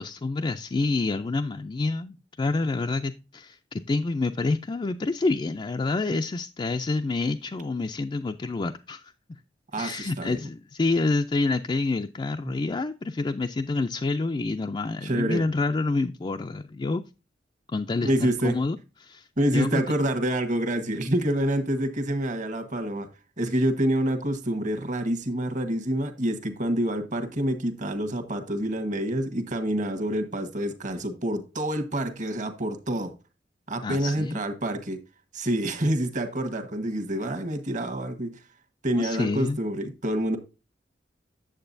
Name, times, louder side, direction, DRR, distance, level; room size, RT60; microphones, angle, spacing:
voice 1, 0.0-9.1 9.8-17.0 17.7-19.9 33.8-34.4 39.0-39.6, left 3 dB, 25° left, 0.4 m, -28 dB
voice 2, 9.7-10.4 15.0-15.4 18.0-18.6 19.4-23.1 23.4-33.1 33.7-35.0 35.3-38.4 38.8-40.4, right 1 dB, 45° right, 1.3 m, -27 dB
8.9 x 7.5 x 2.6 m
head